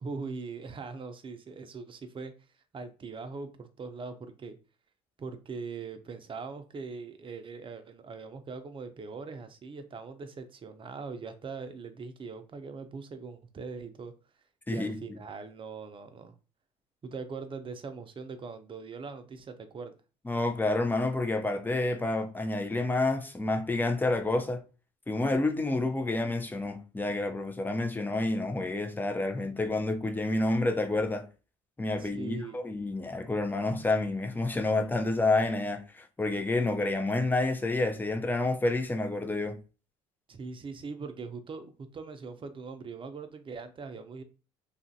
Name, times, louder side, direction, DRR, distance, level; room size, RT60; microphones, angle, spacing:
voice 1, 0.0-2.3 2.7-4.6 5.2-14.1 14.7-16.3 17.0-19.9 32.0-32.6 40.3-41.7 41.9-44.2, right 4 dB, 35° right, 0.6 m, -41 dB
voice 2, 14.7-15.2 20.3-24.6 25.1-31.3 31.8-39.6, left 2 dB, 10° left, 0.6 m, -29 dB
2.7 x 2.5 x 2.7 m
hypercardioid pair, 70°, 16 cm